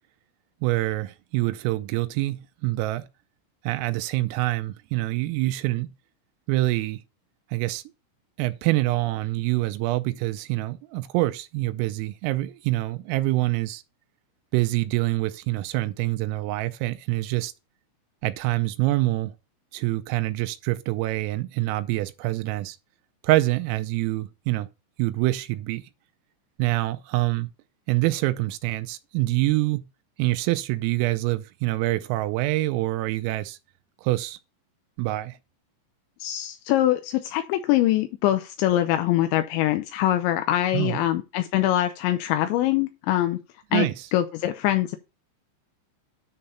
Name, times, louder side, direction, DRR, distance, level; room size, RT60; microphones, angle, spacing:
voice 1, 0.6-3.0 3.6-5.9 6.5-7.0 7.5-7.8 8.4-13.8 14.5-17.5 18.2-19.3 19.7-22.8 23.2-24.7 25.0-25.8 26.6-27.5 27.9-29.9 30.2-33.6 34.0-34.4 35.0-35.4 40.7-41.0 43.7-43.9, right 18 dB, 85° right, 3.3 m, -25 dB
voice 2, 36.2-43.4 43.7-45.0, left 13 dB, 85° left, 2.6 m, -23 dB
10.0 x 3.8 x 5.6 m
omnidirectional pair, 5.9 m